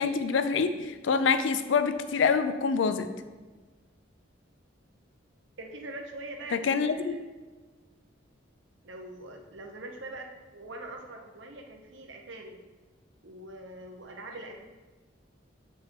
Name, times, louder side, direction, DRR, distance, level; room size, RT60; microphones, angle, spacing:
voice 1, 0.0-3.1 6.5-7.1, left 5 dB, 80° left, 10 dB, 0.4 m, -26 dB
voice 2, 5.6-7.2 8.8-12.6 13.2-14.6, right 2 dB, 75° right, 3 dB, 0.8 m, -43 dB
7.5 x 4.6 x 2.9 m, 1.3 s
head